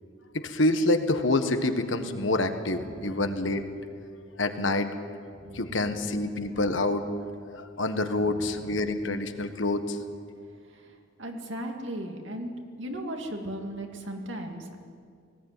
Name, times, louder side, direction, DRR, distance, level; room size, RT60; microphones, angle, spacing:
voice 1, 0.3-3.6 4.4-5.0 5.5-7.0 7.5-10.0, left 2 dB, 75° left, 7 dB, 1.5 m, -27 dB
voice 2, 5.4-5.7 8.3-8.5 10.7-14.8, right 1 dB, 70° right, 2 dB, 2.5 m, -37 dB
19.0 x 16.5 x 9.2 m, 2.3 s
head